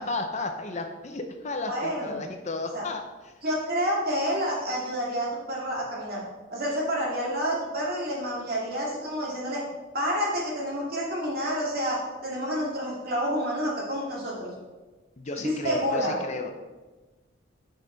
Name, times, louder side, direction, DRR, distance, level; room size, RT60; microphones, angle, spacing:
voice 1, 0.0-3.3 15.2-16.6, left 3 dB, 35° left, 5 dB, 0.6 m, -33 dB
voice 2, 1.7-2.2 2.7-2.9 3.4-6.2 6.5-9.6 9.9-14.5 15.4-16.2, equal, 45° right, -4 dB, 2.5 m, -29 dB
9.5 x 5.7 x 3.9 m, 1.2 s
head